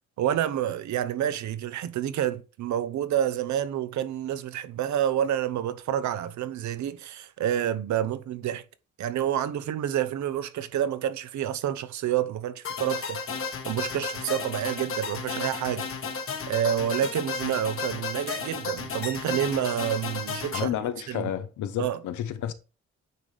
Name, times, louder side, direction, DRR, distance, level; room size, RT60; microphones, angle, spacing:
voice 1, 0.2-8.6 9.0-13.2 13.6-15.8 16.5-20.7 21.1-21.3 21.8-22.0, right 10 dB, 70° right, 0.8 m, -28 dB
sound 1, 12.6-20.6, left 5 dB, 45° left, 1.3 m, -33 dB
voice 2, 20.5-22.5, left 10 dB, 75° left, 0.9 m, -31 dB
9.3 x 3.9 x 3.3 m
cardioid pair, 90°, 30 cm